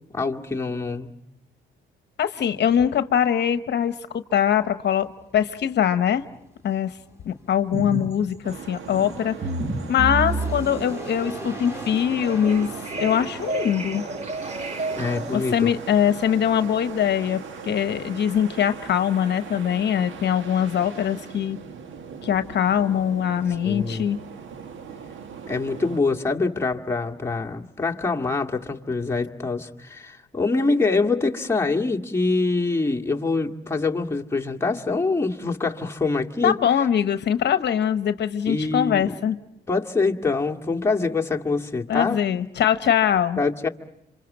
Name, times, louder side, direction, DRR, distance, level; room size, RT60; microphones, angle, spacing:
voice 1, 0.1-1.1 14.9-15.7 23.6-24.1 25.5-36.5 38.5-39.2 39.7-42.2 43.4-43.7, left 3 dB, 15° left, 1 dB, 1.9 m, -25 dB
voice 2, 2.2-6.2 6.6-7.0 7.2-9.3 9.9-12.7 13.0-14.0 15.3-21.6 22.2-24.2 36.4-39.4 41.9-43.4, left 9 dB, 60° left, 11 dB, 1.1 m, -22 dB
sound 1, 4.9-19.4, equal, 15° right, 3.6 m, -44 dB
sound 2, 7.7-8.2 8.5-15.4, right 2 dB, 35° right, 2.1 m, -31 dB
sound 3, 8.4-26.0, right 6 dB, 75° right, 1.8 m, -40 dB
27.0 x 26.0 x 7.4 m, 0.86 s
cardioid pair, 90°, 20 cm